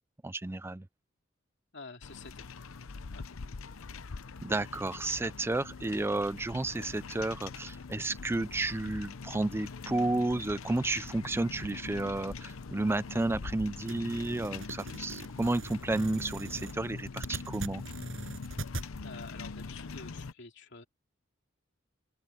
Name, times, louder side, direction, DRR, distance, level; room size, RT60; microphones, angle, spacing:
voice 1, 0.2-0.8 4.4-17.8, right 2 dB, 10° right, 0.4 m, -32 dB
voice 2, 1.7-2.6 3.1-3.5 19.0-20.9, left 4 dB, 60° left, 2.9 m, -49 dB
sound 1, 2.0-20.3, left 4 dB, 85° left, 0.7 m, -43 dB
sound 2, 13.9-18.9, right 2 dB, 75° right, 6.5 m, -42 dB
open air
head